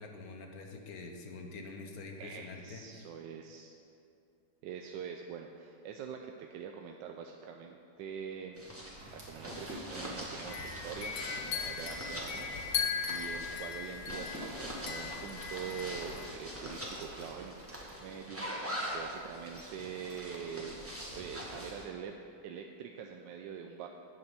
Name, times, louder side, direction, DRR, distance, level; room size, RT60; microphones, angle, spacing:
voice 1, 0.0-2.8, left 3 dB, 60° left, 3 dB, 1.2 m, -45 dB
voice 2, 2.2-3.7 4.6-17.6 18.0-20.8 21.1-22.1 22.4-23.9, right 7 dB, 80° right, 4 dB, 1.2 m, -44 dB
sound 1, 8.6-21.8, equal, 10° right, 1.3 m, -43 dB
sound 2, 9.0-18.2, right 1 dB, 55° right, 2.3 m, -53 dB
sound 3, 10.5-16.3, left 7 dB, 80° left, 1.7 m, -38 dB
8.4 x 7.8 x 6.9 m, 2.6 s
omnidirectional pair, 2.0 m